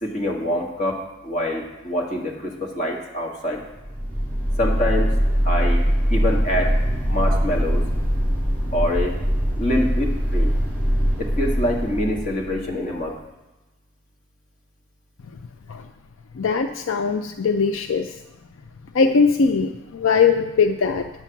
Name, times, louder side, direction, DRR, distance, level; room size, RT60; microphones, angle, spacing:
voice 1, 0.0-3.6 4.6-5.1 5.4-5.8 6.1-6.7 7.1-7.8 8.7-9.2 9.6-10.5 11.2-13.2, left 1 dB, 35° left, -1 dB, 1.8 m, -25 dB
sound 1, 3.7-13.0, equal, 10° left, 4.3 m, -22 dB
voice 2, 16.3-18.2 18.9-21.1, left 5 dB, 75° left, 7 dB, 0.5 m, -20 dB
10.0 x 5.9 x 7.0 m, 1.1 s
head